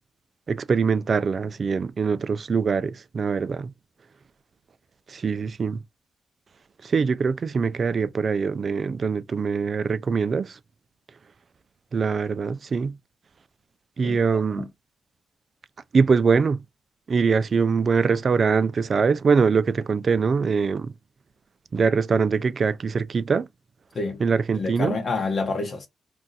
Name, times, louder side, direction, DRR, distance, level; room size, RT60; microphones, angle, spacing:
voice 1, 0.5-3.7 5.1-5.8 6.8-10.5 11.9-13.0 14.0-14.6 15.9-16.6 17.1-20.9 21.7-23.5 24.2-25.0, right 5 dB, 50° right, 0.3 m, -23 dB
voice 2, 24.5-25.9, left 3 dB, 55° left, 0.8 m, -28 dB
2.5 x 2.2 x 3.9 m
cardioid pair, 70°, 0 cm